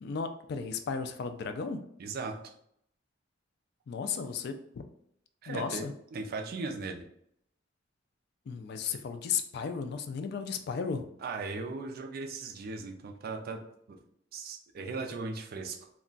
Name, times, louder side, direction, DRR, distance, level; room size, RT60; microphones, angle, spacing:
voice 1, 0.0-1.8 3.9-4.9 5.5-5.9 8.5-11.1, left 6 dB, 55° left, 8 dB, 0.3 m, -34 dB
voice 2, 2.0-2.5 5.4-7.1 11.2-14.0 14.3-15.8, right 3 dB, 50° right, 3 dB, 0.4 m, -38 dB
2.3 x 2.2 x 3.7 m, 0.70 s
head